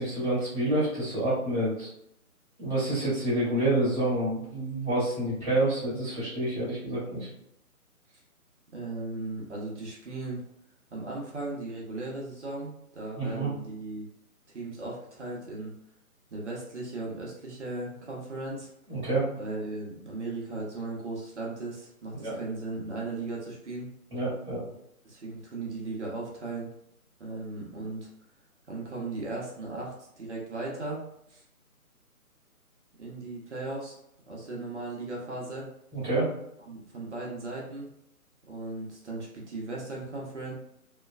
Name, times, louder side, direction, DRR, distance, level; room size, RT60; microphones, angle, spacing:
voice 1, 0.0-1.9 2.6-7.3 13.2-13.5 18.9-19.3 22.2-22.3 24.1-24.6 35.9-36.3, right 1 dB, 20° right, -10 dB, 1.3 m, -28 dB
voice 2, 8.7-10.4 10.9-14.1 14.5-15.7 16.3-18.7 19.4-23.9 25.0-26.7 27.2-28.1 28.7-31.4 33.0-34.0 34.3-35.7 36.6-37.9 38.5-40.5, right 2 dB, 50° right, -3 dB, 0.8 m, -37 dB
3.0 x 2.3 x 2.3 m, 0.76 s
hypercardioid pair, 165°, 44 cm